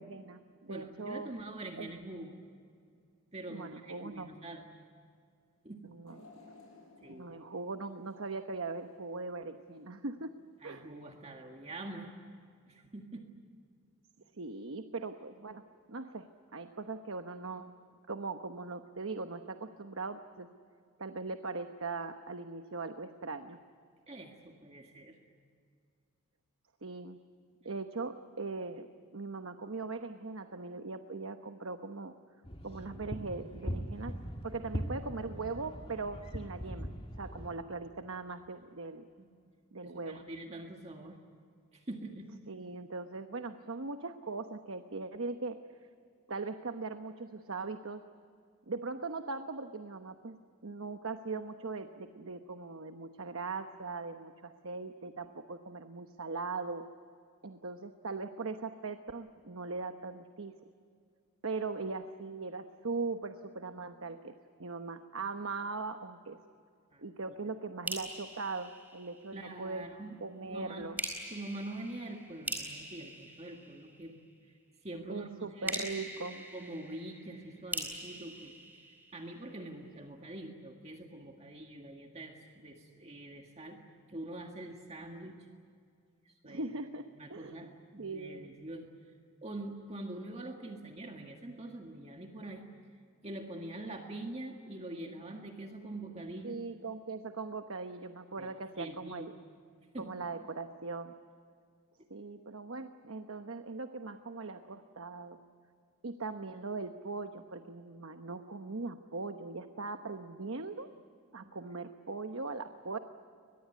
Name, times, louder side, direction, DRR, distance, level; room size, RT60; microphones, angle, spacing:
voice 1, 0.0-1.3 1.8-1.9 3.5-4.3 5.8-6.2 7.1-10.3 10.6-10.9 14.4-15.6 15.9-17.7 18.1-20.5 21.0-23.6 26.8-27.2 27.6-28.9 29.1-32.1 32.6-36.9 37.2-39.1 39.7-40.2 42.5-45.6 46.3-48.0 48.7-50.4 50.6-56.8 57.4-60.5 61.4-64.3 64.6-66.4 67.0-69.8 70.2-71.0 75.1-76.4 86.4-87.7 88.0-88.5 96.4-99.3 100.0-101.1 102.1-105.4 106.0-110.9 111.3-113.0, right 3 dB, 65° right, 7 dB, 1.0 m, -40 dB
voice 2, 0.7-2.4 3.3-4.7 5.6-5.8 7.0-7.4 10.6-12.1 12.7-13.3 24.1-25.2 39.2-39.3 39.8-41.2 41.7-42.3 66.9-67.0 69.3-70.1 70.5-70.9 71.3-74.2 74.8-76.0 76.5-78.8 79.1-83.8 84.1-85.5 86.3-86.6 87.2-88.9 89.4-92.7 93.2-96.6 98.4-99.3 99.9-100.1 111.4-111.5, right 1 dB, 30° right, 2 dB, 1.8 m, -44 dB
sound 1, 6.1-9.2 9.7-9.8 10.8-10.9, left 2 dB, 70° left, 6.1 m, -58 dB
sound 2, 32.4-37.6, equal, 25° left, 1.6 m, -40 dB
sound 3, 67.9-69.6 71.0-74.3 75.7-79.6, right 1 dB, 10° right, 4.4 m, -42 dB
23.0 x 21.5 x 9.4 m, 2.2 s
head